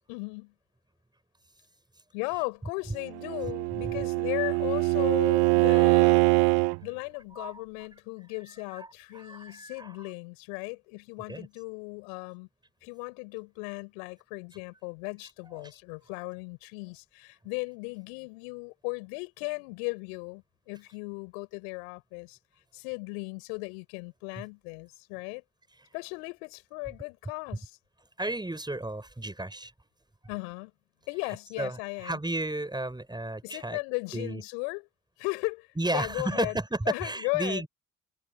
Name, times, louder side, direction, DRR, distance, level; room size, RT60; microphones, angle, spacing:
voice 1, 0.1-0.5 2.1-6.3 6.8-12.5 12.8-22.4 22.7-25.4 25.9-27.8 30.3-30.7 31.1-32.2 33.4-34.9 35.2-36.6 36.9-37.6, left 37 dB, 75° left, 4.7 m, -36 dB
Bowed string instrument, 3.1-6.8, right 28 dB, 70° right, 0.9 m, -23 dB
voice 2, 7.3-7.9 8.5-10.0 11.3-11.5 15.4-15.7 24.3-24.4 28.2-29.7 31.6-33.8 34.1-34.4 35.8-37.7, right 2 dB, 10° right, 6.6 m, -33 dB
hypercardioid pair, 60°, 39 cm